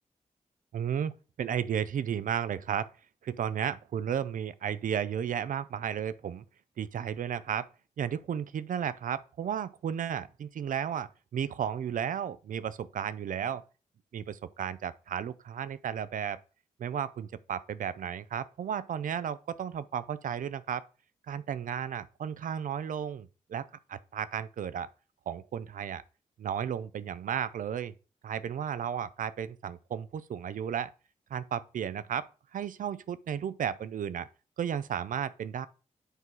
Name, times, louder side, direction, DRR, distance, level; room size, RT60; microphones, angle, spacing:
voice 1, 0.7-1.1 1.4-2.9 3.2-6.4 6.8-7.7 8.0-13.6 14.1-16.4 16.8-20.9 21.3-24.9 25.3-26.0 26.4-27.9 28.2-30.9 31.3-34.3 34.6-35.7, right 8 dB, 70° right, 0.5 m, -34 dB
8.2 x 4.7 x 3.8 m
cardioid pair, 60°, 14 cm